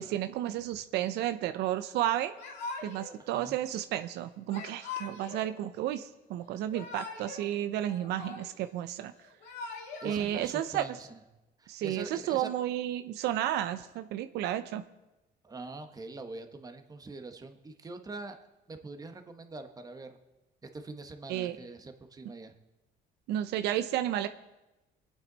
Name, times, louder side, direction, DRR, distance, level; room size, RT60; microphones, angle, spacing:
voice 1, 0.0-2.3 2.8-9.1 10.0-10.8 11.7-14.8 21.3-21.6 23.3-24.3, right 12 dB, 80° right, 10 dB, 0.6 m, -32 dB
Yell / Crying sobbing, 2.4-3.2 4.5-5.5 6.5-7.4 7.7-8.7 9.2-10.2, left 4 dB, 90° left, 2.2 m, -42 dB
voice 2, 3.2-3.5 10.0-11.2 11.6-12.5 15.4-18.4 18.7-20.2 20.6-22.5, right 3 dB, 20° right, 7 dB, 1.3 m, -44 dB
23.0 x 9.0 x 4.0 m, 1.0 s
cardioid pair, 110°, 17 cm